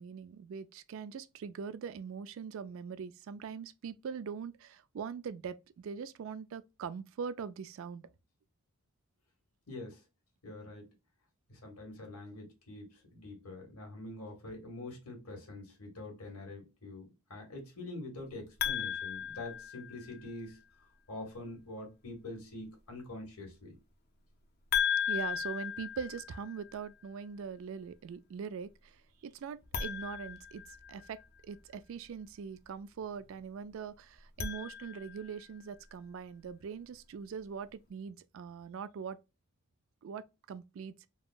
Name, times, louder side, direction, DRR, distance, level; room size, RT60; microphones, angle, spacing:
voice 1, 0.0-8.1 25.1-31.2 31.4-39.2 40.0-41.1, right 6 dB, 60° right, 0.3 m, -42 dB
voice 2, 9.7-10.0 10.4-10.9 11.5-23.8, left 2 dB, 90° left, 1.5 m, -45 dB
sound 1, 18.6-20.3 24.7-26.7 29.6-31.2 34.1-35.4, left 8 dB, 45° left, 0.5 m, -36 dB
3.5 x 2.0 x 2.3 m
head